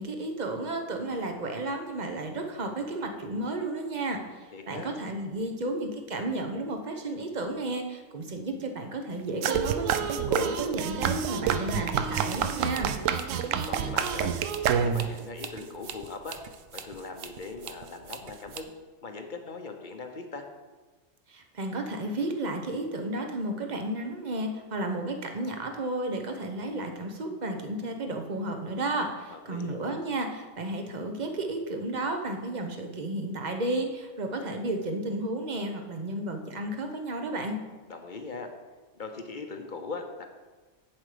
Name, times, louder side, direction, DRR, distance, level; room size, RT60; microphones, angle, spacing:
voice 1, 0.0-12.9 21.3-37.6, right 2 dB, 40° right, 4 dB, 1.0 m, -32 dB
voice 2, 4.5-5.0 13.3-14.3 14.8-16.4 16.7-18.7 19.0-20.5 29.3-29.8 37.9-38.5 39.0-40.3, left 4 dB, 45° left, 5 dB, 0.9 m, -40 dB
sound 1, 9.4-15.2, right 8 dB, 85° right, 1.0 m, -28 dB
sound 2, 12.0-18.6, right 7 dB, 55° right, 0.7 m, -44 dB
7.9 x 7.4 x 5.0 m, 1.3 s
omnidirectional pair, 1.3 m